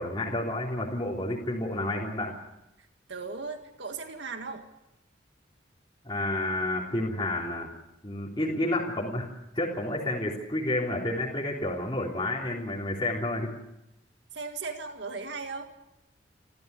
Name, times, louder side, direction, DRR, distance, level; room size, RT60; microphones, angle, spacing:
voice 1, 0.0-2.3 6.0-7.7 8.0-9.3 9.5-13.5, left 1 dB, 25° left, -4 dB, 3.5 m, -30 dB
voice 2, 3.1-4.7 14.3-15.7, right 4 dB, 65° right, 5 dB, 1.9 m, -37 dB
28.5 x 14.0 x 8.3 m, 0.90 s
head